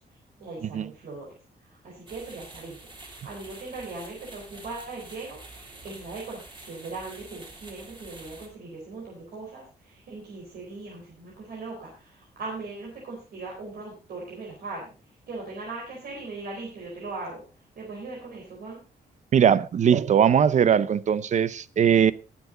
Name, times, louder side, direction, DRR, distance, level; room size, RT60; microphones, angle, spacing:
voice 1, 0.4-1.3 1.6-18.8, right 3 dB, 65° right, 4.3 m, -39 dB
sound 1, 2.1-8.5, right 2 dB, 30° right, 3.1 m, -47 dB
voice 2, 19.3-22.1, right 8 dB, 45° right, 0.6 m, -20 dB
19.5 x 7.2 x 3.9 m
wide cardioid pair, 165°, 17 cm